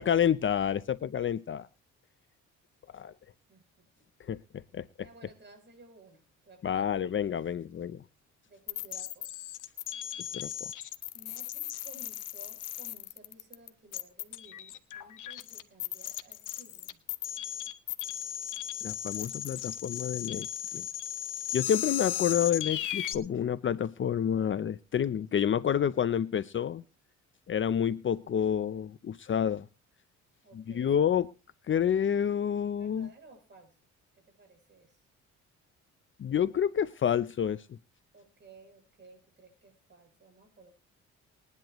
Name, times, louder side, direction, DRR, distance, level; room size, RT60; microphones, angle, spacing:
voice 1, 0.0-1.7 2.9-3.1 4.3-4.4 4.7-4.9 6.6-8.0 10.3-10.5 18.8-20.5 20.7-20.9 21.5-26.8 27.5-29.7 30.5-31.3 31.7-33.1 36.2-37.8, left 8 dB, 40° left, 15 dB, 0.6 m, -29 dB
voice 2, 3.5-4.1 5.0-6.9 8.5-9.3 10.3-10.6 11.1-17.0 30.4-31.0 32.8-33.8 34.1-35.0 38.1-40.7, right 2 dB, 35° right, 3 dB, 7.8 m, -56 dB
sound 1, 8.7-23.1, left 11 dB, 85° left, 1.1 m, -36 dB
20.5 x 10.5 x 3.1 m, 0.32 s
cardioid pair, 90°, 30 cm